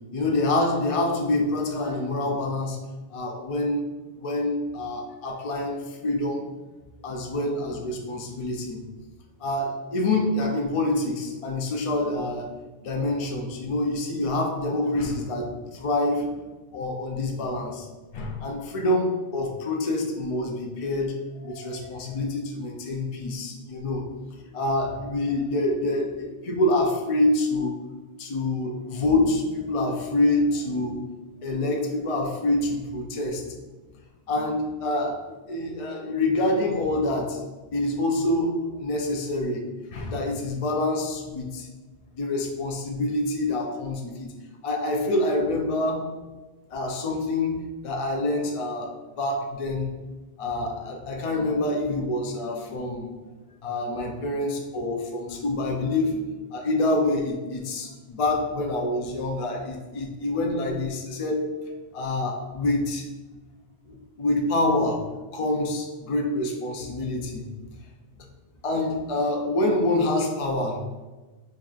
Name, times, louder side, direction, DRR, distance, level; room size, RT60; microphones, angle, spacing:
voice 1, 0.1-2.8 3.1-3.9 4.2-6.5 7.0-8.8 9.4-12.5 12.8-16.3 16.7-17.9 18.1-24.1 24.4-27.7 28.2-31.1 31.4-33.4 34.3-37.4 37.7-38.5 38.8-39.6 39.9-41.7 42.2-44.3 44.6-46.1 46.7-47.6 47.8-49.9 50.4-53.1 53.6-56.2 56.5-61.4 61.9-63.1 63.9-65.0 65.3-67.5 68.6-70.9, left 2 dB, 50° left, 1 dB, 0.4 m, -26 dB
5.5 x 2.4 x 2.3 m, 1.2 s
omnidirectional pair, 1.0 m